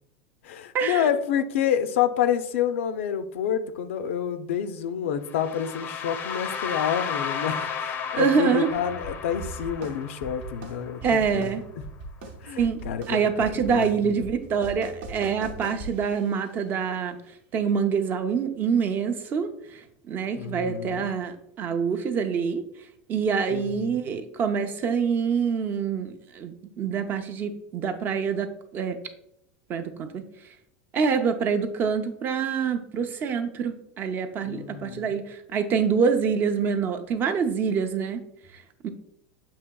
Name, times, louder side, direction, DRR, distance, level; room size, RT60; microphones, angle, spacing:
voice 1, 0.4-11.5 12.4-14.1 20.3-21.1 23.5-24.0 34.4-35.1, left 9 dB, 90° left, 0.4 m, -28 dB
sound 1, 5.3-11.3, left 6 dB, 30° left, 0.4 m, -33 dB
voice 2, 8.2-8.7 11.0-11.6 12.6-12.8 13.1-17.2 17.5-22.6 23.1-29.0 29.7-30.2 30.9-38.2 38.8-38.9, right 6 dB, 30° right, 0.4 m, -26 dB
sound 2, 8.7-16.5, right 3 dB, 70° right, 0.8 m, -41 dB
6.9 x 2.8 x 2.2 m
supercardioid pair, 145°, 7 cm